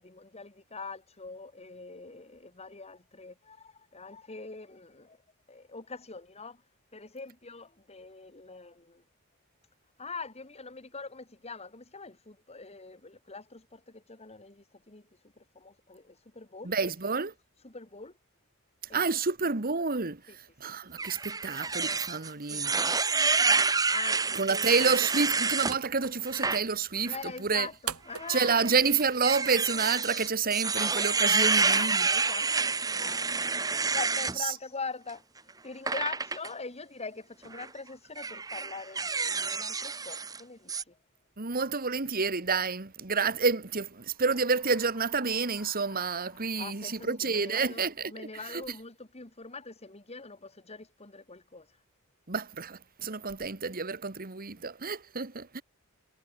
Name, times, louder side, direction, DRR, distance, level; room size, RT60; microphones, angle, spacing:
voice 1, 0.0-5.2 5.5-6.6 6.9-9.0 10.0-15.0 15.4-16.7 17.6-18.1 18.9-19.0 22.5-23.0 23.9-24.7 27.1-28.6 31.3-32.7 33.0-35.2 35.6-41.0 46.6-51.7, left 4 dB, 30° left, 2.1 m, -43 dB
voice 2, 16.6-17.3 18.9-22.7 24.3-27.7 28.3-32.1 34.4-34.5 41.4-48.8 52.3-55.6, right 5 dB, 40° right, 1.5 m, -29 dB
sound 1, 21.0-25.8 26.3-26.6 27.0-27.2 28.2-34.4 35.9-36.5 37.4-37.7 38.2-40.4 40.7-40.8, right 4 dB, 15° right, 1.0 m, -28 dB
sound 2, 25.0-30.0, right 8 dB, 90° right, 3.7 m, -45 dB
sound 3, 43.9-48.6, left 4 dB, 75° left, 7.5 m, -57 dB
head